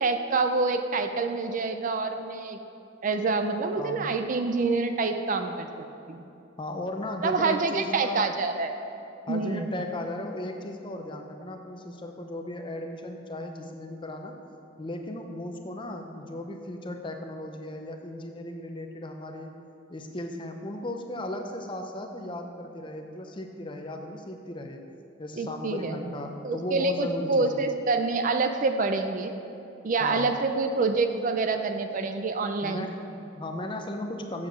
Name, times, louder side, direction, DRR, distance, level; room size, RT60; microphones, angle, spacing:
voice 1, 0.0-2.6 3.0-6.2 7.2-8.7 9.3-9.7 25.4-26.1 26.4-29.3 29.8-32.9, right 3 dB, 40° right, 7 dB, 0.4 m, -27 dB
voice 2, 6.6-8.3 9.3-14.3 14.8-19.5 19.9-24.8 25.2-27.6 30.0-30.3 32.6-34.5, left 1 dB, 25° left, 4 dB, 0.6 m, -36 dB
7.2 x 6.9 x 6.1 m, 2.8 s
head